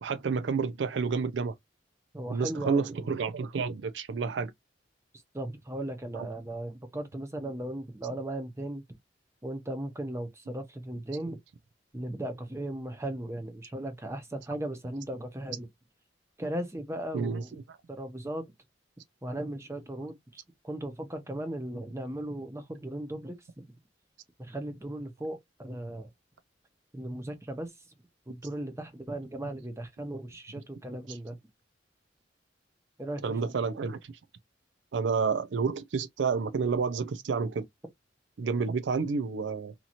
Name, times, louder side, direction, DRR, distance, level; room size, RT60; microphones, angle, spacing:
voice 1, 0.0-1.5 2.3-4.5 6.1-6.3 17.1-17.5 31.1-31.2 33.2-34.1 34.9-37.7 38.4-39.7, right 5 dB, 70° right, 0.4 m, -30 dB
voice 2, 2.1-2.9 5.3-8.8 9.4-11.4 11.9-15.7 16.4-17.5 17.9-18.4 19.2-23.6 24.4-26.1 26.9-27.7 28.3-31.4 33.0-33.7, right 1 dB, 15° right, 0.7 m, -37 dB
2.9 x 2.8 x 2.4 m
head